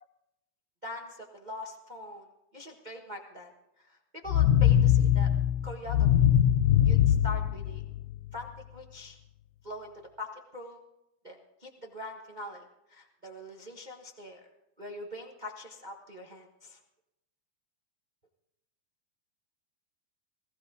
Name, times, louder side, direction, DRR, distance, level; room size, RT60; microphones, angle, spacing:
voice 1, 0.8-2.3 2.5-3.5 3.8-5.3 5.6-6.3 6.8-7.8 8.3-9.2 9.6-9.9 10.2-10.8 11.2-14.4 14.8-16.8, left 1 dB, 60° right, 2 dB, 0.4 m, -43 dB
sound 1, 4.3-8.3, left 10 dB, 75° left, 2.1 m, -23 dB
20.5 x 15.5 x 3.9 m, 0.88 s
omnidirectional pair, 3.6 m